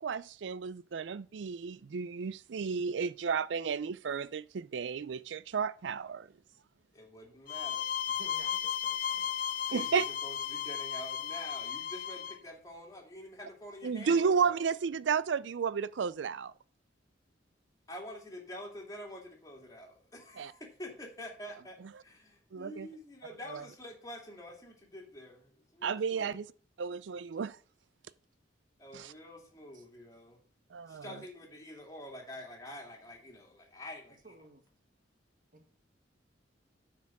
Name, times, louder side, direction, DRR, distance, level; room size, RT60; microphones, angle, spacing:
voice 1, 0.0-6.3 9.7-10.0 13.8-16.5 20.4-20.5 22.5-22.9 23.5-23.6 25.8-26.4 26.8-27.6 28.9-29.1 30.7-31.0, right 6 dB, 70° right, 0.4 m, -32 dB
voice 2, 6.9-8.0 9.4-14.6 17.9-26.4 28.8-30.4 30.9-34.3, left 1 dB, 20° left, 2.7 m, -47 dB
sound 1, 7.5-12.4, left 9 dB, 50° left, 0.5 m, -35 dB
voice 3, 8.2-9.4 29.7-29.8 34.2-34.6 35.5-35.7, right 1 dB, 50° right, 1.5 m, -55 dB
9.5 x 4.8 x 7.2 m
head